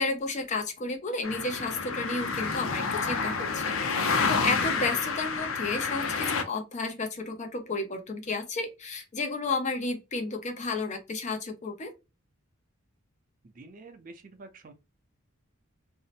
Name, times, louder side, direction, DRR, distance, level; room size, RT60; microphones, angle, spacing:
voice 1, 0.0-11.9, left 3 dB, 35° left, 0.5 m, -32 dB
sound 1, 1.2-6.4, left 4 dB, 85° left, 0.5 m, -29 dB
voice 2, 13.6-14.7, right 3 dB, 40° right, 0.5 m, -48 dB
2.7 x 2.0 x 2.4 m
head